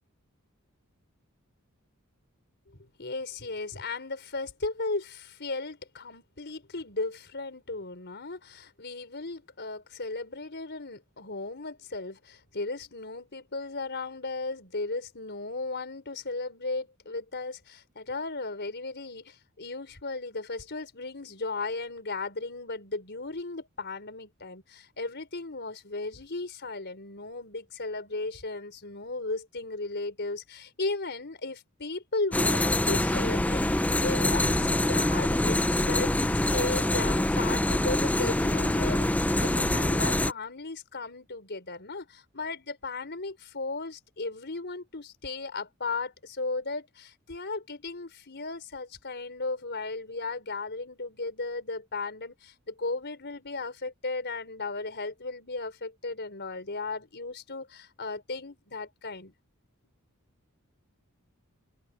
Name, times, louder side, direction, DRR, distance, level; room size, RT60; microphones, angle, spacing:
voice 1, 2.7-59.3, left 3 dB, 50° left, 5.1 m, -36 dB
sound 1, 32.3-40.3, left 1 dB, 5° left, 0.5 m, -25 dB
head